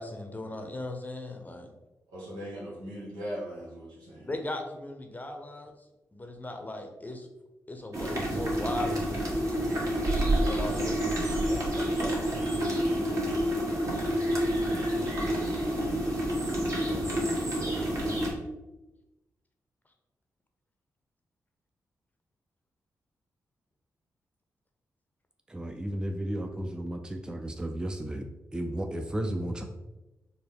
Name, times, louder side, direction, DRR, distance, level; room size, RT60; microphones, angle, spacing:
voice 1, 0.0-1.7 4.3-5.7 6.1-7.3 7.7-9.8 10.4-12.5, left 2 dB, 25° left, 5 dB, 0.7 m, -38 dB
voice 2, 2.1-4.3 15.2-16.0 16.8-18.2, equal, 85° right, -5 dB, 1.2 m, -41 dB
sound 1, 7.9-18.3, right 1 dB, 45° right, 1.3 m, -28 dB
voice 3, 25.5-28.3 28.5-29.6, right 1 dB, 10° right, 5 dB, 0.4 m, -33 dB
3.9 x 2.1 x 3.4 m, 1.0 s
supercardioid pair, 40°, 7 cm